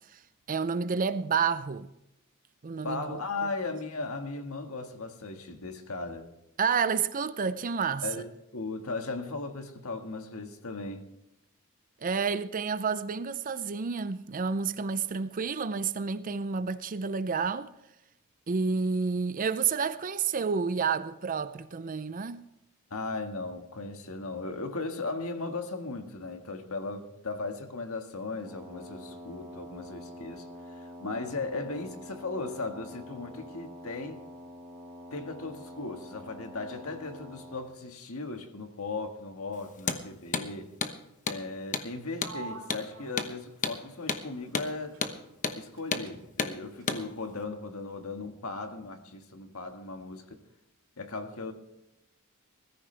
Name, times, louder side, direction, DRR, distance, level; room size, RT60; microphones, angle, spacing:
voice 1, 0.5-1.9 2.6-3.2 6.6-8.1 12.0-17.7 18.5-22.5, right 5 dB, 40° right, 0.5 m, -30 dB
voice 2, 2.8-6.3 8.0-11.1 22.9-30.5 30.7-34.2 35.1-40.7 41.3-45.0 45.6-50.4 51.0-51.5, left 3 dB, 80° left, 1.7 m, -37 dB
Wind instrument woodwind instrument, 28.4-37.7, equal, ahead, 4.9 m, -46 dB
Hammer, 39.8-40.0 40.3-40.5 40.8-41.0 41.3-41.4 41.7-41.9 42.2-42.4 42.7-42.9 43.2-43.3 43.6-43.8 44.1-44.2 44.5-44.7 45.0-45.2 45.4-45.6 45.9-46.1 46.4-46.5 46.9-47.0, left 5 dB, 35° left, 1.0 m, -31 dB
Sliding door, 42.2-45.8 46.1-47.4, right 4 dB, 65° right, 2.8 m, -49 dB
20.5 x 13.5 x 3.4 m
head